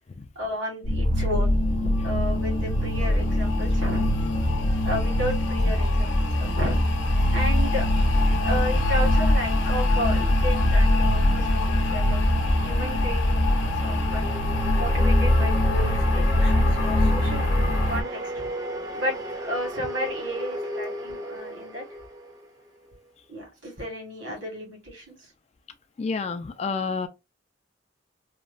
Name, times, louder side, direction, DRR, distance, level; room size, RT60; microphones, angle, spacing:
voice 1, 0.3-4.1 4.8-6.8 7.3-12.2 12.6-14.3 14.7-17.5 17.9-18.5 18.9-21.8 23.3-25.3, equal, 80° right, 1.5 m, -33 dB
sound 1, 0.8-18.0, left 1 dB, 75° left, 0.7 m, -22 dB
sound 2, 12.6-23.0, right 1 dB, 20° right, 0.5 m, -36 dB
voice 2, 26.0-27.1, left 4 dB, 35° left, 0.3 m, -29 dB
2.9 x 2.2 x 2.5 m
head